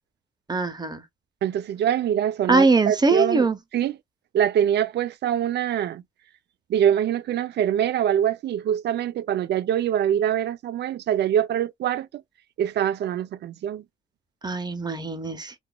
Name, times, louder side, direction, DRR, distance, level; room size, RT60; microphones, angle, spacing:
voice 1, 0.5-1.0 2.5-3.6 14.4-15.5, right 3 dB, 20° right, 0.7 m, -22 dB
voice 2, 1.4-3.5 3.7-4.0 4.3-6.0 6.7-12.2 12.6-13.8, right 10 dB, 60° right, 0.4 m, -24 dB
2.9 x 2.2 x 2.2 m
cardioid pair, 90°, 20 cm